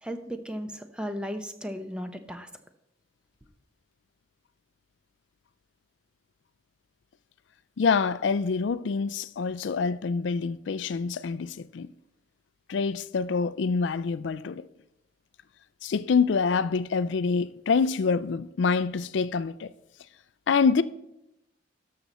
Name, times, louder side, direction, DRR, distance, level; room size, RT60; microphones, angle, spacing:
voice 1, 0.0-2.5, equal, 5° right, 0.7 m, -35 dB
voice 2, 7.8-11.9 12.7-14.7 15.8-19.7 20.5-20.8, left 5 dB, 65° left, 0.4 m, -26 dB
12.0 x 6.7 x 4.1 m
head